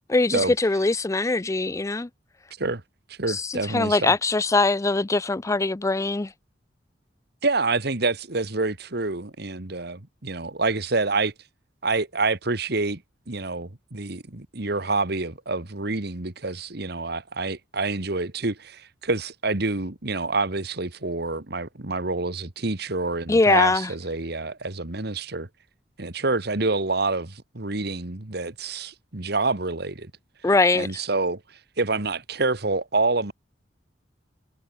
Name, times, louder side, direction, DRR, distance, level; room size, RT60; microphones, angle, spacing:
voice 1, 0.1-2.1 3.3-6.3 23.3-23.9 30.4-30.9, left 3 dB, 15° left, 0.4 m, -22 dB
voice 2, 3.1-4.1 7.4-11.3 11.8-13.0 13.3-25.5 26.0-30.1 30.7-33.3, right 3 dB, 60° right, 2.0 m, -27 dB
head